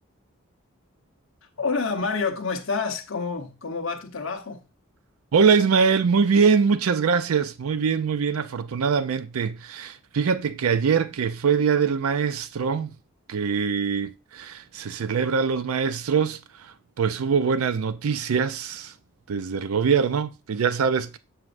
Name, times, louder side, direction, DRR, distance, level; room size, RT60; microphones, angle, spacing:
voice 1, 1.6-4.6, left 4 dB, 65° left, 1.1 m, -28 dB
voice 2, 5.3-12.9 13.3-18.9 19.3-21.2, right 6 dB, 85° right, 0.4 m, -23 dB
7.8 x 6.0 x 2.6 m
head